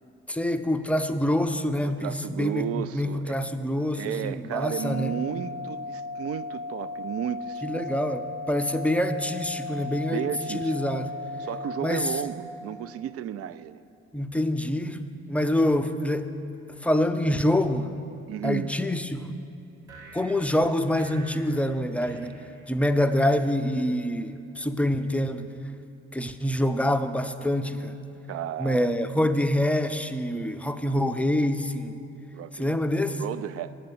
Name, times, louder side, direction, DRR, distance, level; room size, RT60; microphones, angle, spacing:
voice 1, 0.3-5.2 7.6-11.1 11.8-12.2 14.1-15.0 15.3-16.3 16.8-17.9 18.4-19.3 20.1-22.3 22.7-25.5 26.1-28.0 28.6-32.0 32.5-33.2, left 1 dB, 5° left, 9 dB, 0.5 m, -26 dB
voice 2, 1.8-3.4 3.9-8.0 10.0-10.8 11.4-13.8 18.3-18.7 28.3-28.9 32.3-32.8 33.1-33.7, right 10 dB, 45° right, 14 dB, 0.4 m, -33 dB
sound 1, 4.5-12.2, left 3 dB, 80° right, 2.5 m, -36 dB
sound 2, 19.8-23.3, right 3 dB, 65° right, 2.6 m, -49 dB
8.9 x 6.6 x 8.0 m, 2.7 s
hypercardioid pair, 50°, 33 cm